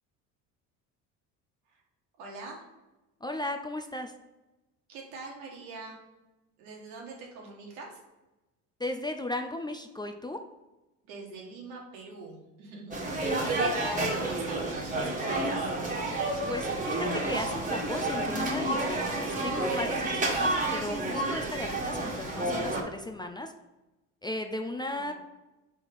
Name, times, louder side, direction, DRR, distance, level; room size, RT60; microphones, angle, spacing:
voice 1, 2.2-2.6 4.9-6.0 6.6-8.0 11.0-15.7 24.9-25.1, right 3 dB, 80° right, -1 dB, 1.8 m, -43 dB
voice 2, 3.2-4.1 8.8-10.4 16.5-23.5 24.2-25.1, left 1 dB, 10° left, 5 dB, 0.4 m, -36 dB
sound 1, 12.9-22.8, right 2 dB, 20° right, 1.5 m, -30 dB
4.4 x 4.4 x 5.2 m, 1.0 s
supercardioid pair, 85°, 39 cm